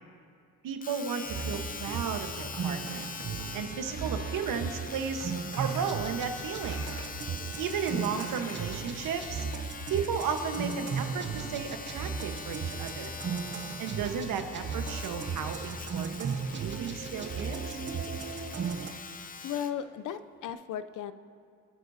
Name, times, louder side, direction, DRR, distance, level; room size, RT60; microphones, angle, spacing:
voice 1, 0.6-3.1 3.5-6.8 7.6-9.4 9.9-13.1 13.8-17.8, right 6 dB, 70° right, 6 dB, 1.3 m, -34 dB
Domestic sounds home sounds, 0.8-19.8 20.5-20.6, left 5 dB, 25° left, 0.6 m, -43 dB
sound 1, 1.2-18.9, right 5 dB, 35° right, 0.7 m, -36 dB
sound 2, 5.5-6.3 6.6-7.8 8.0-8.6 8.9-9.2 9.9-10.5 11.1-11.2 12.6-12.7 13.0-13.4, left 2 dB, 45° left, 2.1 m, -48 dB
voice 2, 19.4-21.1, left 9 dB, 65° left, 13 dB, 0.6 m, -35 dB
25.5 x 9.7 x 2.8 m, 2.4 s
cardioid pair, 105°, 34 cm